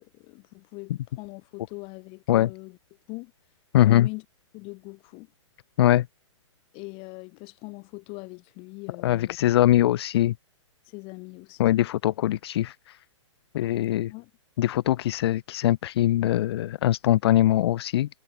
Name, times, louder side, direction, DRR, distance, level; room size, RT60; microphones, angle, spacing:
voice 1, 0.0-2.8 3.1-3.3 3.8-4.3 4.5-5.3 6.7-9.9 10.9-11.7 14.1-14.3, left 28 dB, 35° left, 7.2 m, -42 dB
voice 2, 3.7-4.1 5.8-6.0 9.0-10.3 11.6-12.7 13.5-14.1 14.6-18.1, left 13 dB, 55° left, 0.4 m, -22 dB
hypercardioid pair, 130°, 16 cm